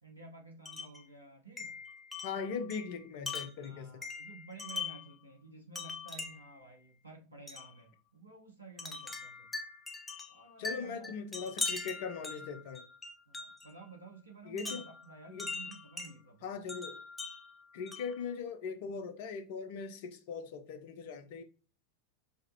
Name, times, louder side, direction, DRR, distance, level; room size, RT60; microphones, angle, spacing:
voice 1, 0.0-1.8 3.6-9.5 10.3-11.1 13.3-16.5, right 3 dB, 85° right, 0.9 m, -52 dB
Wind chime, 0.6-1.0 1.6-5.1 5.7-6.6 7.5-7.7 8.8-13.7 14.6-16.1 16.7-18.2, left 3 dB, 10° left, 0.6 m, -41 dB
voice 2, 2.2-4.0 10.6-12.8 14.4-14.9 15.3-15.5 16.4-17.0 17.7-21.4, left 5 dB, 50° left, 0.6 m, -40 dB
4.9 x 2.4 x 2.7 m
figure-of-eight pair, 90°, 0 cm